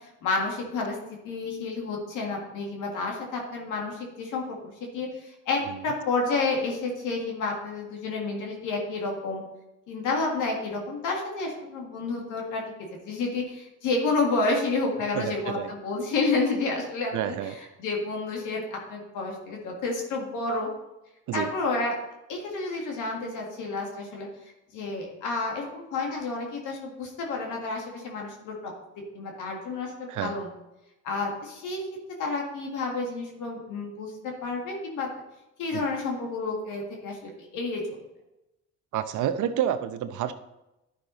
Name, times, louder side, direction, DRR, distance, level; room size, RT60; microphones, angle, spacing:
voice 1, 0.0-1.0 1.2-9.4 9.9-12.6 13.1-20.7 21.3-21.9 22.3-24.3 24.7-28.7 29.1-30.5 31.0-31.8 32.2-35.1 35.6-38.0, left 3 dB, 90° left, 0 dB, 1.8 m, -30 dB
voice 2, 15.1-15.7 17.1-17.5 21.3-21.5 30.1-30.3 35.7-35.8 38.9-40.3, right 10 dB, 80° right, 10 dB, 0.7 m, -29 dB
11.5 x 5.8 x 3.9 m, 0.94 s
cardioid pair, 90°, 30 cm